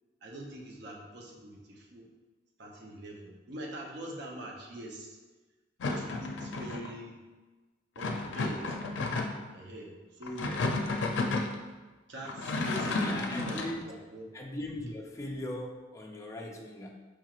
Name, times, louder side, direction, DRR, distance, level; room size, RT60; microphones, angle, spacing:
voice 1, 0.2-2.1 2.6-5.2 5.9-7.2 8.0-8.8 9.5-10.6 12.1-14.3, right 1 dB, 60° right, -1 dB, 0.6 m, -44 dB
sound 1, 5.8-6.9 8.0-9.5 10.2-11.5 12.2-13.7, left 3 dB, 80° left, 0.4 m, -32 dB
voice 2, 12.8-13.8 14.3-16.9, left 1 dB, 15° left, 0 dB, 0.3 m, -39 dB
4.5 x 2.4 x 3.0 m, 1.2 s
head